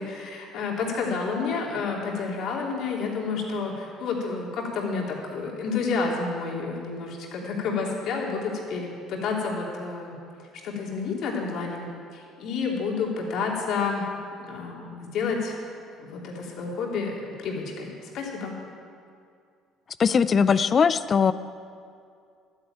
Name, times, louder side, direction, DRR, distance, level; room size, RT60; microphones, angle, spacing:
voice 1, 0.0-10.2 10.6-11.8 12.1-14.0 14.4-15.6 16.0-18.5, left 4 dB, 65° left, -2 dB, 3.1 m, -30 dB
voice 2, 20.0-21.3, left 6 dB, 40° left, 14 dB, 0.5 m, -20 dB
12.0 x 9.7 x 8.8 m, 2.3 s
supercardioid pair, 90°, 0 cm